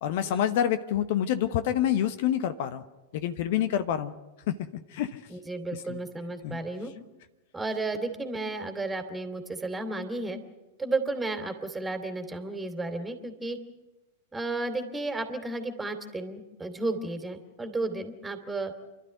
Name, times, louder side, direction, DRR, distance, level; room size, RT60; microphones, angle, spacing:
voice 1, 0.0-2.8 3.1-4.1 4.5-4.6 4.9-5.2 5.7-6.0 6.4-6.6, left 10 dB, 55° left, 12 dB, 1.0 m, -27 dB
voice 2, 5.3-6.9 7.5-10.4 10.8-13.6 14.3-18.7, right 2 dB, 10° right, 7 dB, 2.7 m, -33 dB
28.5 x 12.0 x 9.2 m, 1.1 s
figure-of-eight pair, 95°, 0 cm